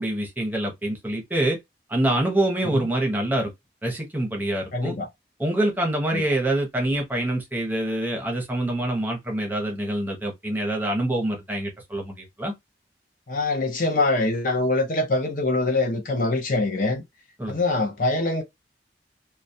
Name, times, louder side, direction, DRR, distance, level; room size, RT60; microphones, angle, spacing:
voice 1, 0.0-1.6 1.9-3.5 3.8-4.9 5.4-12.5 17.4-17.6, right 1 dB, 10° right, 0.7 m, -25 dB
voice 2, 4.7-5.1 6.1-6.2 13.3-17.0 17.5-18.4, left 2 dB, 50° left, 0.6 m, -24 dB
2.2 x 2.1 x 2.6 m
head